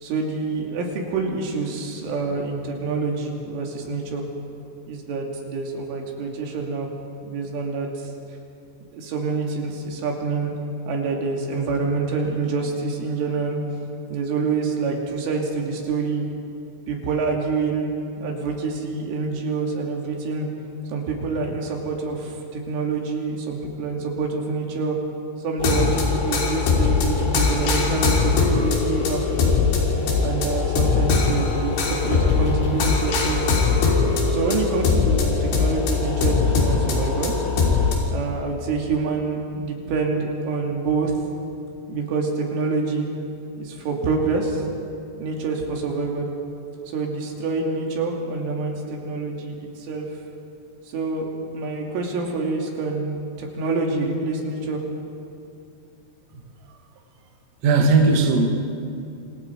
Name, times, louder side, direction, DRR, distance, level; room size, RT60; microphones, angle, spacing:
voice 1, 0.0-4.3 4.9-6.9 7.2-8.1 8.9-10.5 10.9-13.6 14.1-16.3 16.9-20.5 20.9-25.0 25.4-29.6 30.2-33.5 34.3-37.4 38.1-41.1 41.9-43.1 43.6-44.7 45.2-46.3 46.9-50.1 50.9-54.8, right 4 dB, 80° right, 0 dB, 5.2 m, -26 dB
sound 1, 25.6-38.0, left 4 dB, 65° left, 5.2 m, -21 dB
voice 2, 57.6-58.5, right 3 dB, 50° right, 1 dB, 2.3 m, -18 dB
27.0 x 26.5 x 4.7 m, 2.6 s
omnidirectional pair, 5.6 m